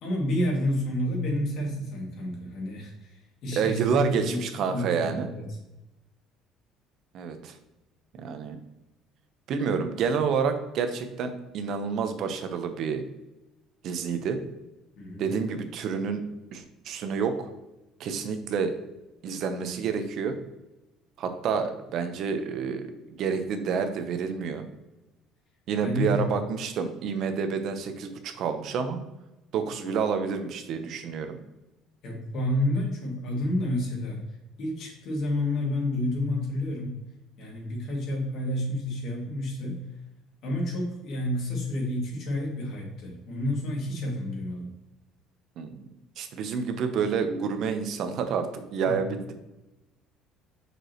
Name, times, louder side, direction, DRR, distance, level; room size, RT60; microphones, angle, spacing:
voice 1, 0.0-4.4 4.7-5.5 15.0-15.3 25.8-26.3 32.0-34.2 34.6-37.0 37.4-39.8 40.4-44.7 48.8-49.0, left 1 dB, 60° left, -1 dB, 2.3 m, -30 dB
voice 2, 3.6-5.3 7.1-7.5 8.2-8.6 9.5-13.0 13.8-14.4 15.2-16.2 16.5-17.5 18.0-18.7 19.2-20.3 21.2-24.6 25.7-29.0 29.5-31.4 45.6-45.9 46.2-49.3, right 6 dB, 60° right, 8 dB, 0.8 m, -29 dB
6.1 x 5.4 x 3.0 m, 0.98 s
cardioid pair, 130°, 0 cm